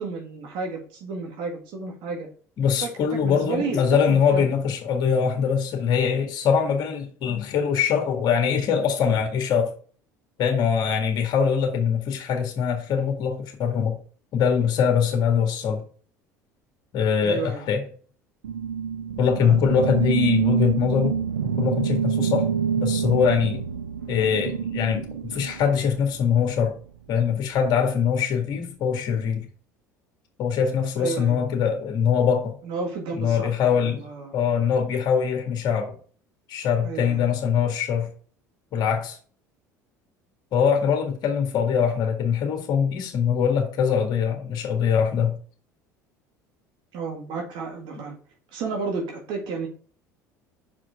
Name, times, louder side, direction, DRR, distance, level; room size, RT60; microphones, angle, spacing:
voice 1, 0.0-2.3 2.8-4.5 17.2-17.7 19.4-19.5 31.0-31.4 32.6-34.3 36.8-37.2 46.9-48.2 48.5-49.7, right 4 dB, 60° right, 1.9 m, -32 dB
voice 2, 2.6-9.7 10.4-14.0 14.3-15.8 16.9-17.8 19.2-21.2 21.4-22.5 22.7-23.6 24.1-26.8 27.1-29.5 30.4-32.5 33.2-34.0 34.3-35.9 36.5-38.1 38.7-39.2 40.5-45.4, left 7 dB, 50° left, 1.9 m, -23 dB
sound 1, 18.4-26.2, right 7 dB, 85° right, 0.6 m, -27 dB
5.9 x 4.9 x 4.6 m
hypercardioid pair, 70°, 9 cm